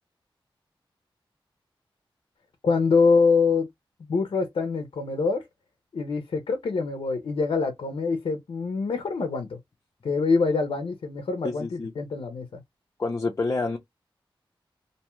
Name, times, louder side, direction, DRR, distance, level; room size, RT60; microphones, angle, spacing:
voice 1, 2.6-3.7 4.1-5.5 5.9-9.6 10.0-12.6, left 4 dB, 85° left, 0.5 m, -25 dB
voice 2, 11.4-11.9 13.0-13.8, left 3 dB, 35° left, 0.5 m, -28 dB
2.6 x 2.2 x 2.9 m
wide cardioid pair, 125°, 9 cm